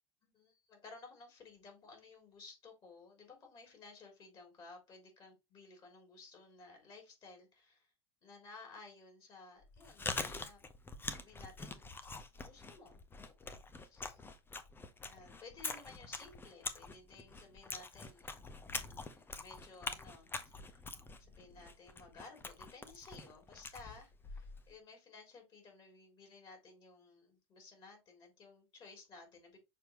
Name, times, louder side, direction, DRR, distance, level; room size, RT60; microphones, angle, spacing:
voice 1, 0.2-7.9 8.2-10.6 11.2-14.2 15.0-18.3 18.8-20.8 21.2-29.6, left 3 dB, 35° left, 3.3 m, -56 dB
Chewing mastication, 9.6-24.7, left 3 dB, 15° left, 0.9 m, -45 dB
6.8 x 4.5 x 3.1 m
hypercardioid pair, 85°, 14 cm